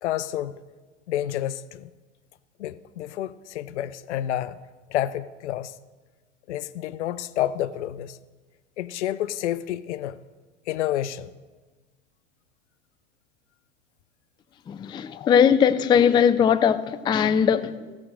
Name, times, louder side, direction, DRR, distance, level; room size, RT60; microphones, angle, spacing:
voice 1, 0.0-0.6 1.1-1.9 2.6-4.6 4.9-5.7 6.5-8.2 8.8-10.2 10.7-11.3 14.9-15.3, left 12 dB, 75° left, 0.6 m, -29 dB
voice 2, 14.7-18.0, left 8 dB, 15° left, 0.3 m, -20 dB
16.5 x 6.3 x 6.3 m
hypercardioid pair, 85°, 35 cm